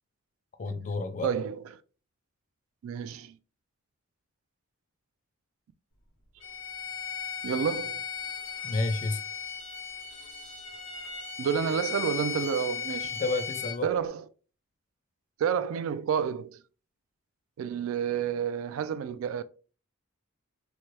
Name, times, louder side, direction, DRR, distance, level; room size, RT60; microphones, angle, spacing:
voice 1, 0.6-1.3 8.6-9.2 13.1-13.9, left 2 dB, 35° left, 0.4 m, -30 dB
voice 2, 1.2-1.6 2.8-3.4 7.4-8.0 11.4-13.2 13.8-14.2 15.4-16.6 17.6-19.4, right 7 dB, 75° right, 0.3 m, -29 dB
Bowed string instrument, 6.4-13.8, left 7 dB, 65° left, 1.2 m, -37 dB
3.1 x 2.2 x 2.8 m
head